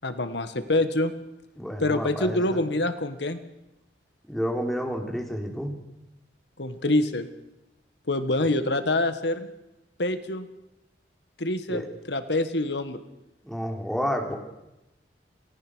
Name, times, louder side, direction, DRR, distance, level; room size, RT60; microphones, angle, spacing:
voice 1, 0.0-1.1 1.8-3.4 6.6-7.3 8.1-9.5 10.0-10.5 11.4-11.8 12.1-13.0, left 2 dB, 85° left, 10 dB, 1.7 m, -25 dB
voice 2, 1.6-2.6 4.3-5.8 8.4-8.5 11.7-11.9 13.4-14.4, equal, ahead, 1 dB, 3.6 m, -30 dB
28.5 x 19.0 x 6.4 m, 0.93 s
head